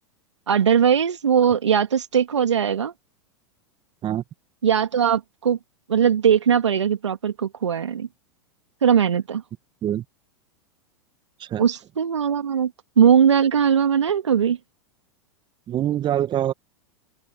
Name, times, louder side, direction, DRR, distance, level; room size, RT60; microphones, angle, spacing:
voice 1, 0.5-2.9 4.6-5.6 5.9-8.1 8.8-9.4 11.6-12.7 13.0-14.6, right 8 dB, 80° right, 2.8 m, -19 dB
voice 2, 15.7-16.5, right 11 dB, 30° right, 2.0 m, -24 dB
open air
hypercardioid pair, 95°, 15 cm